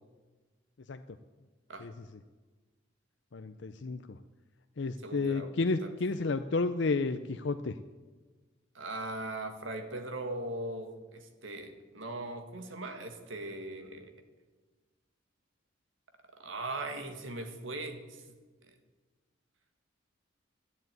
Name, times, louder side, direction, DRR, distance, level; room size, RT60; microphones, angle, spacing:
voice 1, 3.3-4.0 4.8-7.8, left 3 dB, 65° left, 9 dB, 0.6 m, -31 dB
voice 2, 5.0-5.5 5.8-5.9 8.7-14.1 16.4-18.2, right 2 dB, 90° right, 6 dB, 2.0 m, -39 dB
13.0 x 11.0 x 9.1 m, 1.3 s
head